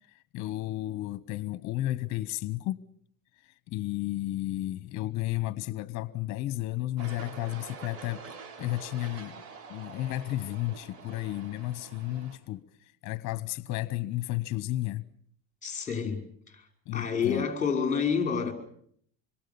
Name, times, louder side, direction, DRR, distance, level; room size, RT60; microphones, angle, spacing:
voice 1, 0.1-2.8 3.4-8.2 8.6-9.4 9.7-15.0 16.9-17.5, left 16 dB, 50° left, 1.1 m, -33 dB
sound 1, 7.0-12.4, right 5 dB, 75° right, 6.9 m, -46 dB
voice 2, 15.6-16.6 16.9-18.5, left 6 dB, 20° left, 5.4 m, -29 dB
26.5 x 23.0 x 7.0 m
supercardioid pair, 130°, 38 cm